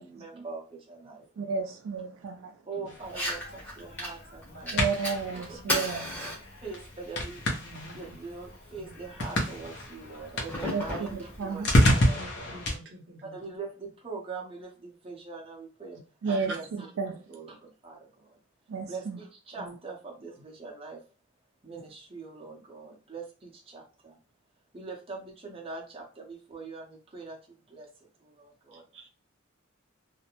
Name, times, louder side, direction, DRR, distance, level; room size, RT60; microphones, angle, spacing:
voice 1, 0.0-1.5 2.7-4.8 5.5-5.8 6.3-6.4 6.6-7.4 7.9-12.6 13.2-16.0 16.3-16.9 17.3-18.4 18.9-21.0 21.6-24.2 24.7-27.9 28.2-28.8, right 4 dB, 25° right, 0.6 m, -43 dB
voice 2, 1.4-2.5 4.7-6.4 10.7-11.7 16.2-16.5 17.0-17.2 18.7-19.2, right 5 dB, 90° right, 0.4 m, -32 dB
sound 1, 2.9-12.8, equal, 55° left, 0.7 m, -30 dB
Fire, 3.0-12.0, equal, 10° left, 0.8 m, -38 dB
voice 3, 7.6-8.1 8.8-8.9 12.1-13.4 16.2-16.6 19.6-19.7 21.7-21.8 28.9-29.1, equal, 60° right, 0.8 m, -45 dB
2.4 x 2.1 x 2.8 m
head